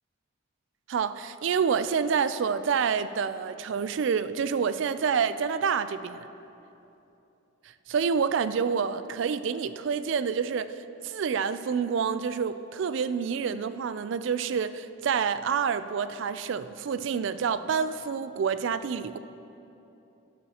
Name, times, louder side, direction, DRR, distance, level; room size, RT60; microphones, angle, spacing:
voice 1, 0.9-6.3 7.9-19.2, right 6 dB, 65° right, 13 dB, 0.3 m, -28 dB
12.0 x 11.5 x 2.9 m, 2.9 s
head